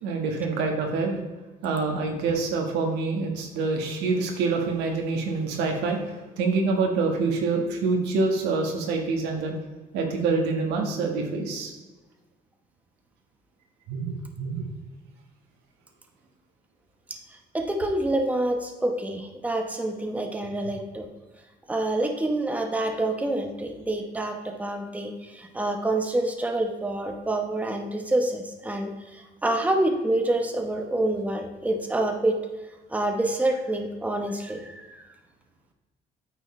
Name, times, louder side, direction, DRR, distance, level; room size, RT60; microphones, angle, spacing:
voice 1, 0.0-1.2 1.6-9.5 9.9-11.7 13.9-14.7, right 4 dB, 90° right, 2 dB, 1.6 m, -26 dB
voice 2, 17.5-21.1 21.7-32.4 32.9-35.0, right 1 dB, 10° right, 3 dB, 1.0 m, -27 dB
9.0 x 6.2 x 3.2 m, 1.2 s
cardioid pair, 110°, 17 cm